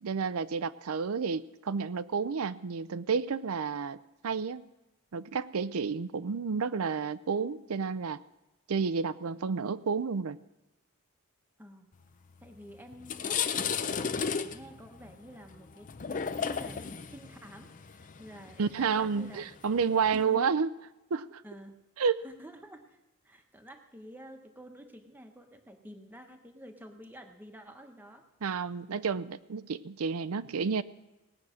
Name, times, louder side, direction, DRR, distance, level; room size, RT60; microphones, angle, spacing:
voice 1, 0.0-4.0 4.2-4.6 5.1-8.2 8.7-10.4 18.6-20.7 21.1-21.4 22.0-22.2 28.4-30.8, right 5 dB, 80° right, 16 dB, 0.5 m, -30 dB
voice 2, 11.6-11.9 12.4-19.5 20.1-20.5 21.4-21.7 22.2-23.0 23.2-28.3, equal, 10° right, 4 dB, 1.0 m, -50 dB
sound 1, 12.4-12.6 12.9-20.2, left 6 dB, 35° left, 0.5 m, -35 dB
18.5 x 8.5 x 6.4 m, 1.0 s
head